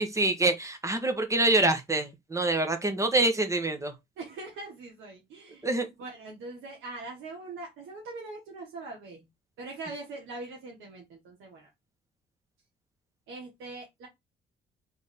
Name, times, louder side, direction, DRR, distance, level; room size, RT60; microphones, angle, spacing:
voice 1, 0.0-3.9 5.6-5.9, right 2 dB, 15° right, 1.2 m, -26 dB
voice 2, 4.2-5.7 6.0-9.3 9.6-11.7 13.3-14.1, right 3 dB, 85° right, 1.3 m, -42 dB
3.6 x 3.0 x 4.1 m
cardioid pair, 90°, 20 cm